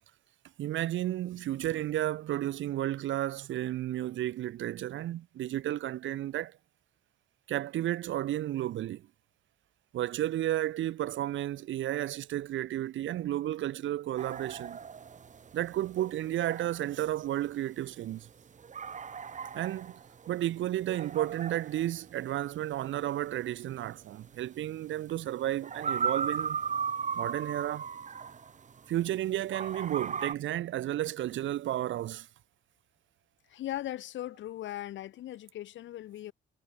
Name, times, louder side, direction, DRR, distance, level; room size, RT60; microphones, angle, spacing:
voice 1, 0.6-6.6 7.5-9.1 9.9-14.8 15.5-18.3 19.5-20.0 20.3-26.6 27.1-27.9 28.9-32.3, right 13 dB, 75° right, 1.3 m, -32 dB
sound 1, 14.2-29.1 29.5-30.3, right 6 dB, 40° right, 1.3 m, -37 dB
voice 2, 33.5-36.3, left 13 dB, 70° left, 0.8 m, -39 dB
cardioid pair, 90°, 20 cm